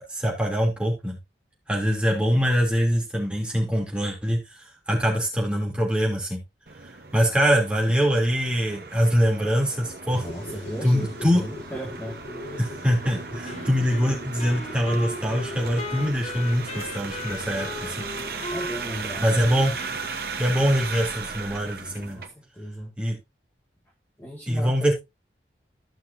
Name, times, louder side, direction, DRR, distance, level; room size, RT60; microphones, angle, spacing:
voice 1, 0.1-1.1 1.7-4.4 4.9-6.4 6.8-10.2 10.8-11.4 12.6-18.1 19.2-19.8 20.4-22.2 23.0-23.2 24.5-24.9, equal, 5° right, 3.0 m, -23 dB
sound 1, 6.7-22.3, right 5 dB, 55° right, 1.2 m, -37 dB
sound 2, 10.1-20.1, left 1 dB, 85° left, 5.4 m, -41 dB
voice 2, 10.1-12.2 13.5-13.8 17.8-18.2 18.5-19.3 21.9-22.9 24.2-24.8, equal, 15° left, 2.0 m, -37 dB
Wind instrument woodwind instrument, 13.4-20.9, left 2 dB, 40° left, 0.9 m, -38 dB
15.0 x 5.8 x 2.7 m
head